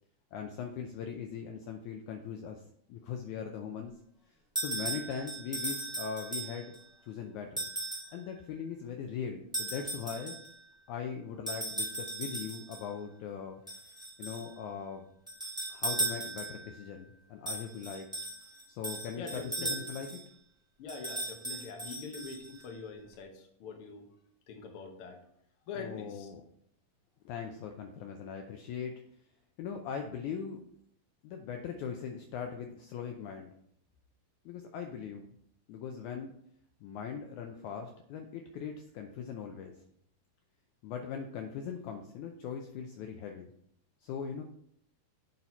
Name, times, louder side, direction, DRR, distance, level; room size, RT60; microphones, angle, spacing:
voice 1, 0.3-2.6 2.9-3.9 4.6-6.7 7.0-7.7 8.1-10.4 10.9-13.6 14.2-15.1 15.7-18.1 18.7-20.1 25.7-26.4 27.2-28.9 29.6-30.6 31.2-33.5 34.4-35.2 35.7-36.3 36.8-39.7 40.8-43.5 44.0-44.4, left 7 dB, 90° left, 4 dB, 1.7 m, -40 dB
sound 1, 4.6-6.8 7.6-8.2 9.5-10.5 11.5-12.8 13.7-14.5 15.3-16.7 17.5-20.2 20.9-22.6, right 2 dB, 5° right, 0.5 m, -37 dB
voice 2, 19.2-19.9 20.8-24.1 24.5-25.2 25.7-26.3, left 4 dB, 70° left, 3 dB, 1.3 m, -44 dB
8.9 x 4.2 x 4.4 m, 0.70 s
omnidirectional pair, 4.2 m